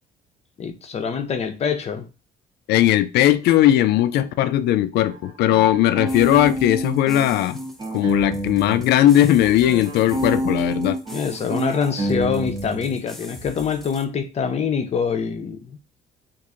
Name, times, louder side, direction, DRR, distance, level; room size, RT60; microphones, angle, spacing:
voice 1, 0.6-2.1 11.1-15.8, left 6 dB, 40° left, 0.7 m, -25 dB
voice 2, 2.7-7.6 7.9-11.0, left 12 dB, 75° left, 0.4 m, -18 dB
sound 1, 5.0-8.9 9.1-13.0, right 1 dB, 25° right, 0.7 m, -28 dB
sound 2, 6.1-14.1, equal, ahead, 0.4 m, -42 dB
3.0 x 2.6 x 3.7 m
cardioid pair, 110°, 17 cm